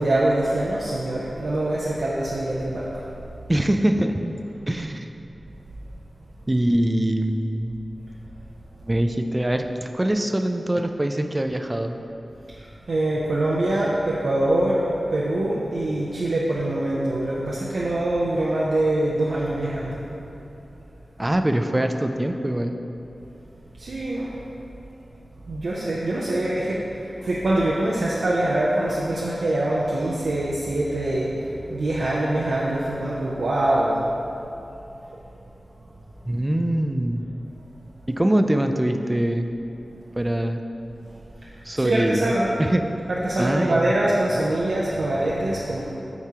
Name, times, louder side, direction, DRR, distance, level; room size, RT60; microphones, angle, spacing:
voice 1, 0.0-3.0 12.6-14.8 15.1-20.0 23.8-24.3 25.5-34.0 41.7-42.5 43.1-45.9, right 1 dB, 80° right, -6 dB, 0.6 m, -24 dB
voice 2, 3.5-4.3 4.7-5.1 6.5-7.8 8.8-12.0 21.2-22.7 36.3-37.2 38.1-39.5 40.2-40.6 41.6-42.3 42.6-42.8 43.4-43.9, right 1 dB, 20° right, 6 dB, 0.4 m, -23 dB
8.1 x 4.7 x 2.9 m, 2.9 s
wide cardioid pair, 65°, 0 cm